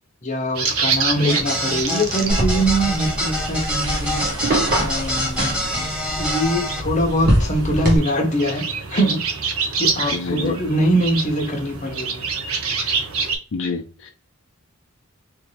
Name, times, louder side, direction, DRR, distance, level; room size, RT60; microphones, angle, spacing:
voice 1, 0.2-4.2 4.8-5.7 6.2-9.2 9.8-12.2, right 1 dB, 35° left, 0.8 m, -22 dB
sound 1, 0.5-13.4, right 5 dB, 75° right, 0.8 m, -28 dB
sound 2, 1.3-6.8, equal, 5° right, 1.3 m, -26 dB
sound 3, 2.3-8.0, right 1 dB, 45° right, 1.3 m, -24 dB
voice 2, 10.1-10.6 13.5-14.1, left 4 dB, 60° left, 0.5 m, -27 dB
3.7 x 2.5 x 3.2 m
head